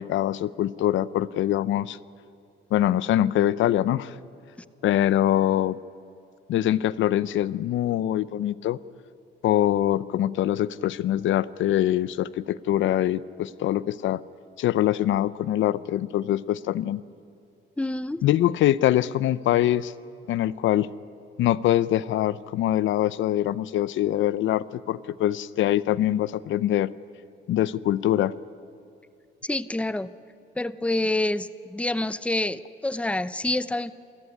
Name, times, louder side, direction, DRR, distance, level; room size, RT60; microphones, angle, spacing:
voice 1, 0.0-2.0 2.7-4.1 4.8-5.8 6.5-8.8 9.4-14.2 14.6-17.0 18.2-19.9 20.3-20.9 21.4-26.9 27.5-28.3, left 12 dB, 75° left, 19 dB, 0.6 m, -23 dB
voice 2, 17.8-18.2 29.4-30.1 30.6-33.9, left 2 dB, 5° left, 16 dB, 0.7 m, -27 dB
28.0 x 14.5 x 9.9 m, 2.7 s
cardioid pair, 90°, 20 cm